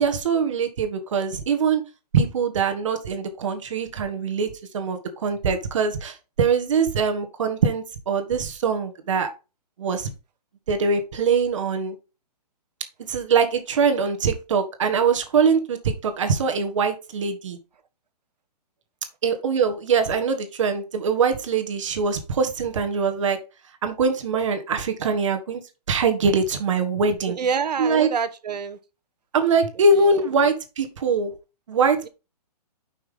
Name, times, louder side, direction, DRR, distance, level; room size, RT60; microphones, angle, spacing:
voice 1, 0.0-1.8 2.1-9.3 9.8-10.1 10.7-12.0 13.1-17.6 19.2-23.4 23.8-25.6 25.9-27.4 27.8-28.1 29.3-31.3 31.7-32.1, right 5 dB, 50° right, 1.6 m, -23 dB
voice 2, 27.4-28.8, right 6 dB, 80° right, 1.2 m, -26 dB
7.1 x 5.8 x 3.8 m
hypercardioid pair, 175°, 21 cm